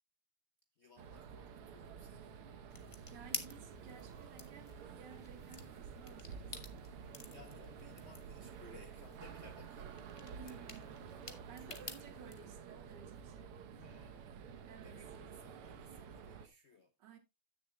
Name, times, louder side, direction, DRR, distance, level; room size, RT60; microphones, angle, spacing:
voice 1, 0.8-2.4 7.3-10.9 11.6-12.5 13.7-14.5 14.8-16.9, left 3 dB, 85° left, 0.6 m, -61 dB
sound 1, 1.0-16.5, right 7 dB, 85° right, 1.9 m, -51 dB
sound 2, 2.7-12.4, left 3 dB, 35° left, 0.5 m, -51 dB
voice 2, 3.0-6.8 10.2-11.0 11.3-13.6 14.7-15.0 17.0-17.2, right 6 dB, 55° right, 2.0 m, -56 dB
16.5 x 6.7 x 2.2 m
omnidirectional pair, 2.4 m